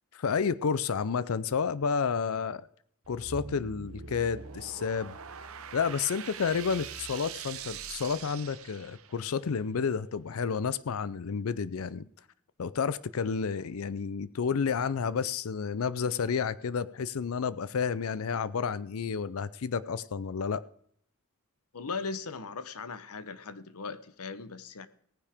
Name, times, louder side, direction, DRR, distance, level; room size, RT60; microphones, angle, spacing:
voice 1, 0.1-2.7 3.1-5.2 5.7-12.0 12.6-20.6, left 6 dB, 75° left, 17 dB, 0.5 m, -30 dB
sound 1, 3.0-9.3, right 6 dB, 75° right, 0.9 m, -43 dB
voice 2, 21.7-24.9, left 4 dB, 90° left, 14 dB, 0.9 m, -38 dB
17.5 x 9.8 x 3.5 m, 0.64 s
head